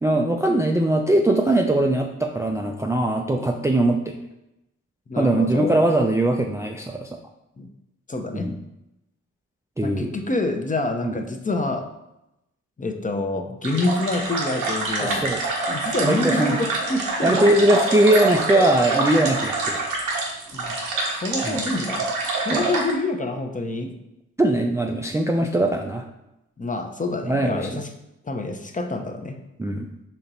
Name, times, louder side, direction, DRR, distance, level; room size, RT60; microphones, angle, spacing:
voice 1, 0.0-4.2 5.1-7.2 8.3-8.6 9.8-10.1 11.0-11.1 15.0-15.4 16.0-16.6 17.2-20.1 21.4-21.6 22.5-22.7 24.4-26.0 27.3-27.8 29.6-29.9, right 1 dB, 10° right, 2 dB, 0.4 m, -21 dB
voice 2, 5.1-5.8 7.6-7.7 8.1-8.5 9.8-11.9 12.8-15.3 15.7-17.5 20.5-20.7 21.2-22.1 22.4-23.9 26.6-27.9 28.2-29.4, left 2 dB, 25° left, 5 dB, 0.7 m, -27 dB
sound 1, 13.6-22.9, right 3 dB, 90° right, 1.0 m, -26 dB
4.2 x 3.0 x 4.0 m, 0.89 s
supercardioid pair, 50°, 33 cm